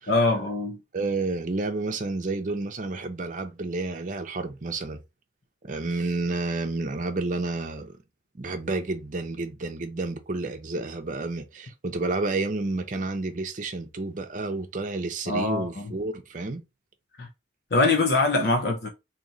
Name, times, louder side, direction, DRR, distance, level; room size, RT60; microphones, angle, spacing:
voice 1, 0.1-0.8 15.3-15.9 17.2-17.3 17.7-18.9, left 3 dB, 55° left, 0.7 m, -23 dB
voice 2, 0.9-5.0 5.6-8.0 8.3-16.6, right 3 dB, 45° right, 0.6 m, -30 dB
3.0 x 2.9 x 3.9 m
head